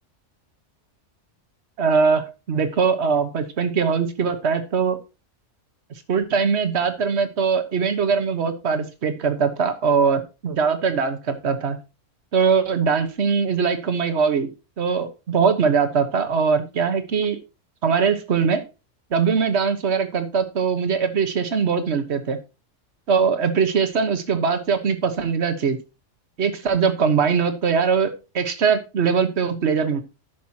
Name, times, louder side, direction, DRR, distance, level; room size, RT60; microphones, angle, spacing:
voice 1, 1.8-5.0 6.1-11.8 12.3-14.5 14.8-17.4 17.8-18.6 19.1-22.4 23.1-25.8 26.4-30.0, right 5 dB, 60° right, 8 dB, 1.4 m, -21 dB
14.5 x 6.2 x 2.8 m, 0.29 s
omnidirectional pair, 1.3 m